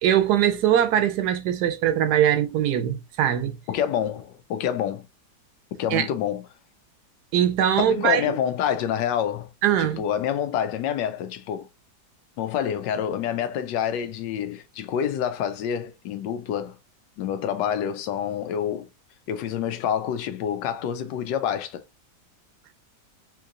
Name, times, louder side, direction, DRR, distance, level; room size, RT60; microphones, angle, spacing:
voice 1, 0.0-3.6 5.9-6.1 7.3-8.2 9.6-10.0, right 10 dB, 75° right, 1.1 m, -21 dB
voice 2, 3.7-5.0 5.8-6.4 7.8-9.5 10.0-11.7 12.4-16.8 17.2-18.9 19.3-21.8, left 9 dB, 85° left, 1.3 m, -27 dB
3.7 x 2.9 x 2.4 m
omnidirectional pair, 1.9 m